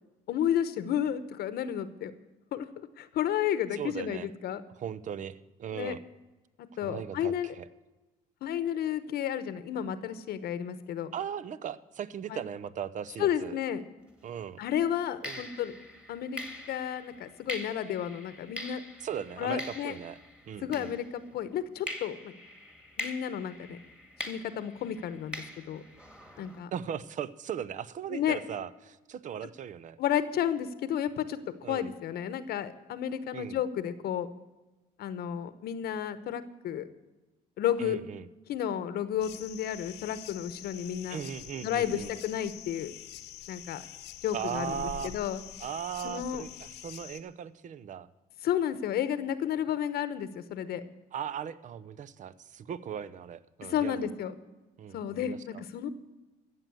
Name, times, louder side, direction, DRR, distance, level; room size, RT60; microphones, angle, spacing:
voice 1, 0.3-2.1 2.5-2.7 3.0-4.6 5.7-6.0 6.8-7.5 8.4-11.1 12.3-12.4 13.2-13.8 14.6-15.7 16.1-16.4 16.7-18.8 19.4-20.0 20.6-22.3 23.0-23.8 24.3-25.8 26.4-26.7 28.1-28.4 30.0-34.3 35.0-36.9 37.6-38.0 38.5-41.2 41.6-42.9 43.5-43.8 44.2-45.4 46.0-46.4 48.4-50.8 53.6-54.3 54.9-55.9, left 10 dB, 70° left, 13 dB, 1.0 m, -32 dB
voice 2, 3.7-4.3 4.8-6.0 6.8-7.7 11.1-13.6 14.2-14.6 15.2-15.4 19.0-20.2 20.5-20.9 26.7-30.0 31.6-31.9 33.3-33.6 37.8-38.3 41.1-42.1 44.3-45.1 45.6-48.1 51.1-54.0 54.8-55.6, right 9 dB, 50° right, 17 dB, 0.7 m, -38 dB
sound 1, 14.1-14.3 15.2-21.4 21.9-26.6, left 1 dB, 5° right, 2.0 m, -43 dB
sound 2, 39.2-47.2, left 12 dB, 85° left, 1.0 m, -46 dB
14.5 x 7.7 x 7.8 m, 1.1 s
cardioid pair, 110°, 17 cm